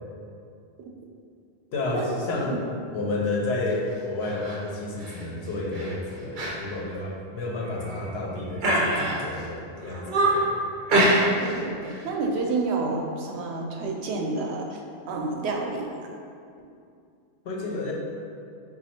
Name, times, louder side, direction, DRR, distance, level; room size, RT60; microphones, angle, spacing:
voice 1, 1.7-2.6 2.9-10.6 17.4-17.9, left 2 dB, 80° left, -2 dB, 0.9 m, -30 dB
sound 1, 4.2-4.6 5.0-5.2 5.7-5.9 6.3-6.6 6.9-7.0 7.6-8.1 8.6-9.4 9.8-10.5 10.9-11.6 11.8-12.1, right 1 dB, 55° right, 0.7 m, -24 dB
voice 2, 11.4-14.8 15.1-15.9, right 3 dB, 85° right, 1 dB, 0.8 m, -29 dB
4.1 x 2.3 x 4.1 m, 2.5 s
omnidirectional pair, 1.1 m